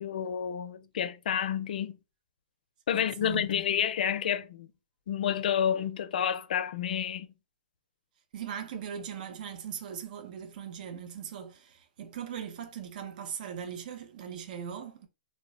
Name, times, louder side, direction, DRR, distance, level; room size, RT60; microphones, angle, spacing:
voice 1, 0.0-2.0 2.9-4.7 5.1-7.3, left 9 dB, 65° left, 0.4 m, -29 dB
voice 2, 2.9-3.8 8.3-15.1, right 8 dB, 60° right, 0.5 m, -40 dB
2.1 x 2.0 x 3.6 m
hypercardioid pair, 130°, 5 cm